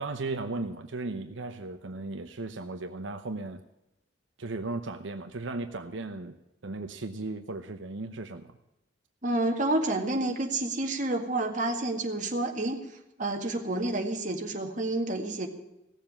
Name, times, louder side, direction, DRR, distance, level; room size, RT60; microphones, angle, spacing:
voice 1, 0.0-3.6 4.4-6.3 6.6-8.5, right 2 dB, 80° right, 7 dB, 0.9 m, -36 dB
voice 2, 9.2-12.8 13.2-15.5, right 2 dB, 40° right, 3 dB, 1.9 m, -29 dB
16.5 x 7.4 x 8.9 m, 0.91 s
head